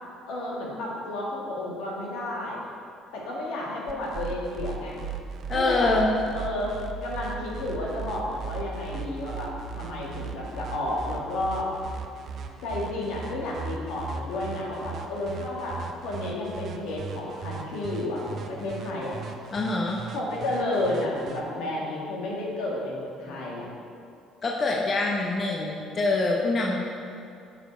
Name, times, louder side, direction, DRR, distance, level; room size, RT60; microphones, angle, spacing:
voice 1, 0.3-2.6 3.1-5.0 5.5-5.9 6.3-6.7 7.0-9.5 9.8-11.7 12.6-19.2 20.1-23.7, left 1 dB, 75° left, -4 dB, 1.8 m, -31 dB
sound 1, 3.9-21.4, right 6 dB, 55° right, 0.7 m, -37 dB
voice 2, 5.5-6.1 19.5-20.0 24.4-26.8, left 2 dB, 40° left, -2 dB, 1.0 m, -25 dB
8.7 x 5.3 x 4.5 m, 2.5 s
supercardioid pair, 70°, 0 cm